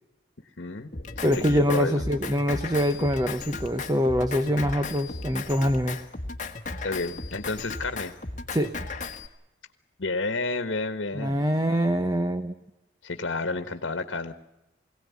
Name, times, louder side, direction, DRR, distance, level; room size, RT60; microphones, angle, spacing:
voice 1, 0.6-0.9 1.1-2.0 6.8-8.1 10.0-11.4 13.0-14.3, left 3 dB, 80° left, 9 dB, 1.4 m, -30 dB
Drum kit, 0.9-9.3, left 3 dB, 40° left, 1.6 m, -36 dB
voice 2, 1.2-6.0 8.5-8.7 11.1-12.5, equal, 20° right, 9 dB, 0.9 m, -24 dB
23.0 x 17.5 x 9.5 m, 0.95 s
head